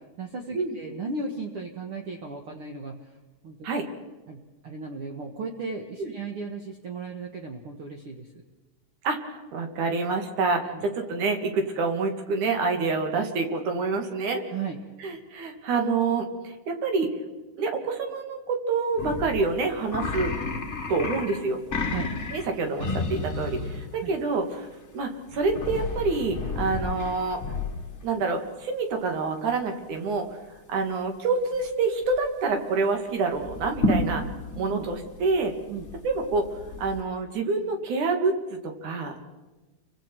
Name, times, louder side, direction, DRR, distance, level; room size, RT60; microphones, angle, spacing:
voice 1, 0.0-3.2 3.4-3.6 4.3-8.3 10.7-10.8 14.5-14.8 21.8-22.1 24.0-24.2 34.7-34.9 35.7-35.9, right 4 dB, 50° right, 2 dB, 2.0 m, -36 dB
voice 2, 9.0-14.4 15.0-17.1 17.6-20.3 20.9-21.6 22.3-24.7 24.9-27.4 28.0-30.3 30.7-34.2 34.6-35.5 36.0-36.4 36.8-38.3 38.8-39.2, right 4 dB, 70° right, 4 dB, 3.5 m, -27 dB
sound 1, 19.0-24.1 25.3-28.0 31.5-31.7 32.0-32.4 33.3-37.0, left 3 dB, 35° left, 1.3 m, -32 dB
30.0 x 24.0 x 4.6 m, 1.2 s
omnidirectional pair, 3.6 m